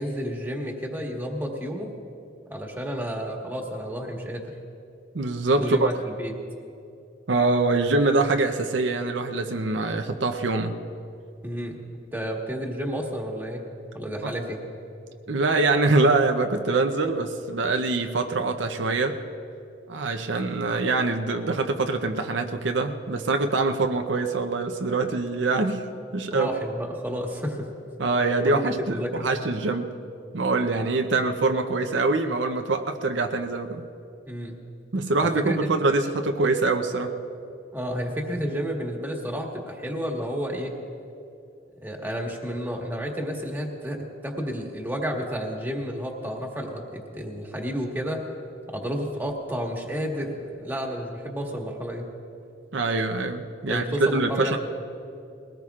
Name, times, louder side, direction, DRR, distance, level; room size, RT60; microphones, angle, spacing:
voice 1, 0.0-1.9 2.5-4.4 5.6-6.3 11.4-11.8 12.1-13.7 13.9-14.6 26.3-27.7 28.4-29.3 34.3-34.6 35.2-35.7 37.7-40.7 41.8-44.0 44.2-48.2 48.7-52.1 53.6-54.6, equal, 10° right, 0 dB, 1.5 m, -31 dB
voice 2, 5.1-5.9 7.3-10.7 14.2-14.3 15.3-19.2 19.9-25.8 26.1-26.5 28.0-29.9 30.3-33.8 34.9-37.1 52.7-54.6, right 3 dB, 75° right, 5 dB, 0.7 m, -24 dB
21.0 x 18.0 x 2.4 m, 2.6 s
head